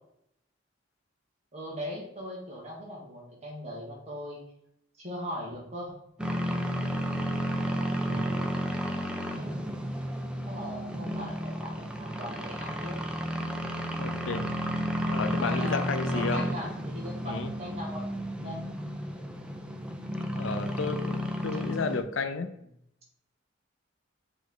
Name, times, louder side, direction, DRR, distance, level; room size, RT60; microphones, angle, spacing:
voice 1, 1.5-4.5 5.0-6.0 9.3-9.8 10.5-13.0 15.2-15.8 16.1-18.6, equal, 35° right, -3 dB, 2.0 m, -39 dB
sound 1, 6.2-22.0, equal, 5° right, 0.5 m, -32 dB
voice 2, 8.1-8.5 14.0-14.4 15.1-16.5 17.2-17.5 20.3-22.5, left 4 dB, 85° left, 9 dB, 0.6 m, -32 dB
7.0 x 3.5 x 3.8 m, 0.75 s
head